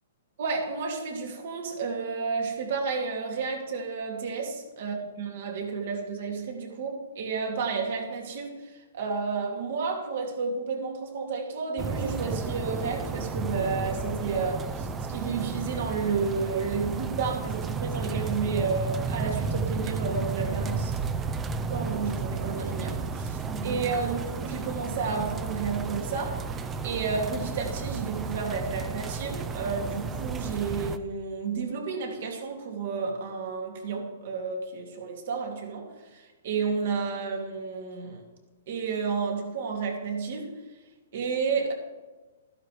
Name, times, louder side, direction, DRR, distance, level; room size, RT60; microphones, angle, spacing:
voice 1, 0.4-21.0 21.7-38.2 38.7-40.5 41.1-41.7, right 5 dB, 55° right, 2 dB, 2.4 m, -31 dB
sound 1, 11.8-31.0, right 4 dB, 15° right, 0.4 m, -32 dB
13.5 x 11.5 x 3.3 m, 1.2 s
hypercardioid pair, 165°, 0 cm